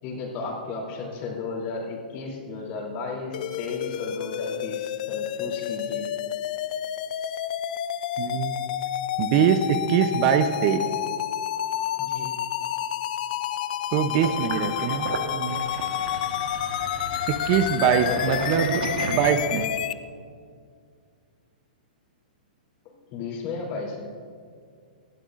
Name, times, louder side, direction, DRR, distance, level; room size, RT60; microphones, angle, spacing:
voice 1, 0.0-6.1 12.0-12.4 17.8-18.5 22.8-24.1, left 4 dB, 40° left, -1 dB, 3.1 m, -34 dB
sound 1, 3.3-19.9, left 10 dB, 60° left, 0.5 m, -29 dB
voice 2, 8.2-8.6 9.2-10.8 13.9-15.7 17.3-19.7, right 8 dB, 40° right, 9 dB, 0.7 m, -23 dB
Sink (filling or washing), 14.2-19.8, right 5 dB, 75° right, 1.3 m, -34 dB
18.5 x 12.5 x 2.5 m, 2.2 s
hypercardioid pair, 130°, 5 cm